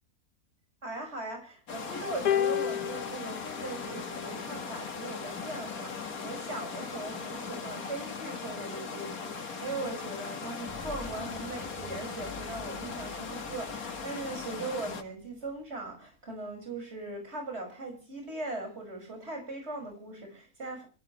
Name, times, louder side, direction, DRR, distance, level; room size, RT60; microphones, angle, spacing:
voice 1, 0.8-20.8, right 2 dB, 45° right, 6.4 m, -39 dB
sound 1, 1.7-15.0, left 5 dB, 70° left, 2.4 m, -39 dB
sound 2, 2.3-4.7 5.7-5.9, left 10 dB, 90° left, 1.6 m, -32 dB
sound 3, 10.7-16.2, left 1 dB, 10° right, 7.1 m, -50 dB
26.0 x 16.0 x 3.2 m
omnidirectional pair, 1.6 m